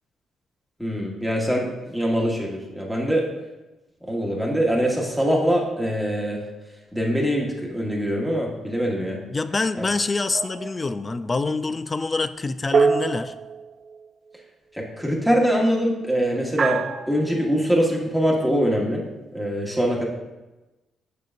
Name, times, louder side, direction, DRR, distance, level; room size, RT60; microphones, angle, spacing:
voice 1, 0.8-3.3 4.0-6.4 6.9-9.2 9.7-9.8 14.7-16.8 17.1-19.0 19.3-20.0, equal, ahead, -2 dB, 1.4 m, -23 dB
voice 2, 9.3-13.3, left 3 dB, 25° left, 13 dB, 0.3 m, -26 dB
sound 1, 10.3-11.0 12.7-14.1 16.6-17.4, right 5 dB, 50° right, 0.4 m, -25 dB
6.6 x 6.4 x 2.5 m, 1.1 s
cardioid pair, 90°, 0 cm